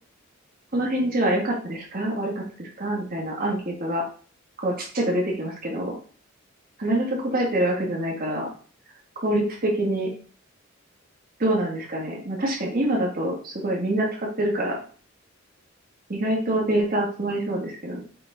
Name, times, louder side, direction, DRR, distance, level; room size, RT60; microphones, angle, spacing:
voice 1, 0.7-4.0 4.6-6.0 6.8-8.5 9.2-10.1 11.4-14.8 16.1-18.0, right 1 dB, 45° right, -1 dB, 2.5 m, -25 dB
7.6 x 4.2 x 3.9 m, 0.42 s
head